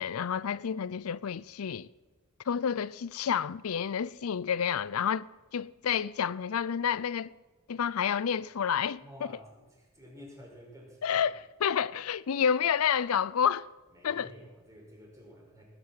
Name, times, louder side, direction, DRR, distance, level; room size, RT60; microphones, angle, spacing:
voice 1, 0.0-1.9 2.5-5.3 5.5-7.3 7.7-9.0 11.0-11.3 11.6-13.7 14.0-14.3, left 7 dB, 90° left, 0.5 m, -29 dB
voice 2, 9.0-11.2 13.9-15.6, equal, 15° right, 5.5 m, -51 dB
20.0 x 9.1 x 7.3 m
head